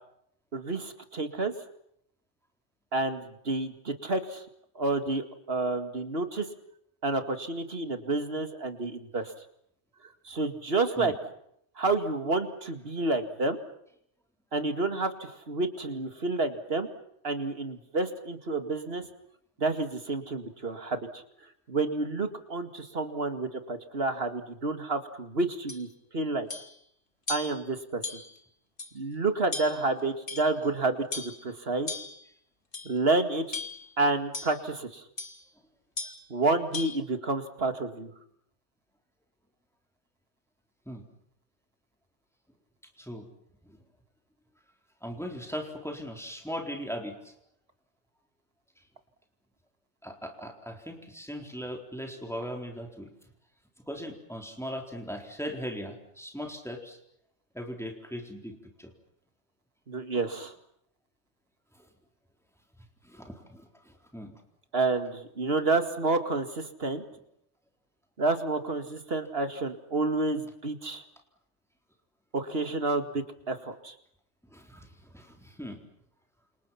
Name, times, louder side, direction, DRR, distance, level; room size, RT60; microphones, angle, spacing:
voice 1, 0.5-1.5 2.9-4.4 4.8-6.5 7.0-9.3 10.3-11.1 11.8-13.6 14.5-16.9 17.2-19.0 19.6-21.2 21.7-25.9 26.1-26.5 27.3-28.2 28.9-31.9 32.8-33.6 34.0-35.0 36.3-38.1 59.9-60.5 64.7-67.0 68.2-71.0 72.3-73.9, right 3 dB, 55° right, 8 dB, 2.3 m, -29 dB
sound 1, 25.7-25.9 26.5-26.8 27.3-27.6 28.0-28.4 28.8-28.9 29.5-29.9 30.3-30.7 31.1-31.4 31.9-32.2 32.7-33.0 33.5-33.9 34.3-34.6 35.2-35.4 36.0-36.3 36.7-37.0, left 3 dB, 45° left, 2.0 m, -37 dB
voice 2, 43.0-43.3 43.6-43.8 45.0-47.3 50.0-53.1 53.9-57.0 57.5-58.9 63.0-64.3 74.4-75.8, equal, ahead, 2 dB, 4.0 m, -39 dB
29.5 x 28.0 x 5.8 m, 0.72 s
omnidirectional pair, 1.2 m